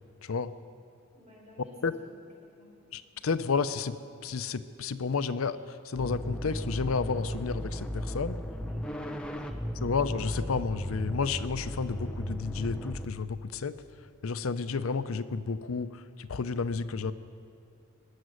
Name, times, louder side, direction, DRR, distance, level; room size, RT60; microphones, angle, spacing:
voice 1, 0.2-0.5 1.8-1.9 2.9-4.0 4.2-5.6 5.8-8.4 9.8-13.8 14.2-17.1, left 5 dB, 85° left, 13 dB, 0.6 m, -31 dB
voice 2, 1.1-2.0 2.6-2.8 8.7-9.9, left 1 dB, 35° right, -3 dB, 3.8 m, -52 dB
sound 1, 6.0-13.1, equal, 5° left, 0.7 m, -35 dB
19.5 x 7.5 x 9.4 m, 2.4 s
head